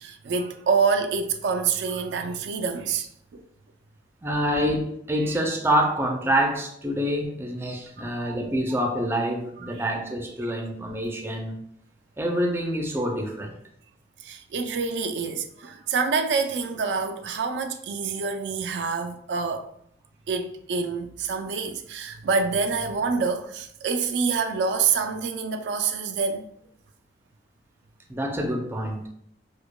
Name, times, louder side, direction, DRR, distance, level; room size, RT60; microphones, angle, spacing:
voice 1, 0.0-3.4 5.2-5.4 8.0-8.4 9.6-9.7 14.2-19.6 20.3-26.5, right 5 dB, 75° right, 0.3 m, -27 dB
voice 2, 4.2-11.6 12.2-13.6 28.1-29.1, equal, 15° right, 0.4 m, -26 dB
4.7 x 2.1 x 2.2 m
head